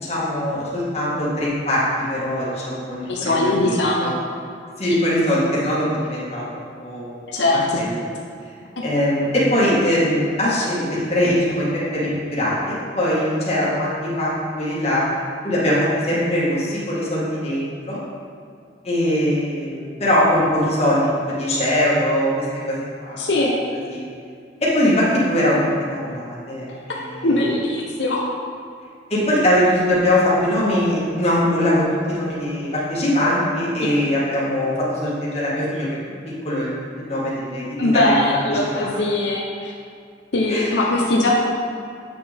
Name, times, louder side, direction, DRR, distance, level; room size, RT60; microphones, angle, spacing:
voice 1, 0.0-4.1 4.8-7.2 7.5-8.1 8.8-15.0 15.4-18.0 18.8-23.3 23.9-24.0 24.6-25.6 25.9-27.5 29.1-35.9 36.4-36.7 37.0-38.1 38.5-39.0 40.5-40.7, left 1 dB, 35° left, -7 dB, 1.9 m, -21 dB
voice 2, 3.1-4.1 4.9-5.0 7.3-7.6 23.2-23.5 26.7-28.2 33.8-33.9 37.8-39.7 40.3-41.4, left 2 dB, 85° left, -2 dB, 0.9 m, -21 dB
8.1 x 6.1 x 3.6 m, 2.3 s
head